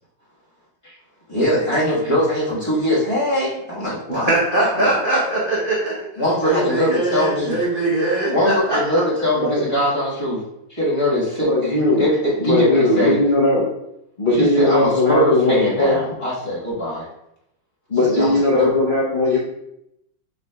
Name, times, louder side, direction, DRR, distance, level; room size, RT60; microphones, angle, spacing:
voice 1, 1.3-4.3 4.7-4.9 6.2-7.6 8.3-10.4 10.7-13.2 14.3-17.0 18.1-18.7, left 1 dB, 20° left, -8 dB, 1.1 m, -21 dB
voice 2, 4.1-6.1 6.4-8.8, right 2 dB, 60° right, -5 dB, 0.5 m, -21 dB
voice 3, 11.4-12.0 12.4-13.7 14.2-16.0 17.9-19.4, left 2 dB, 70° left, -7 dB, 0.4 m, -18 dB
6.4 x 3.4 x 2.2 m, 0.81 s
omnidirectional pair, 2.1 m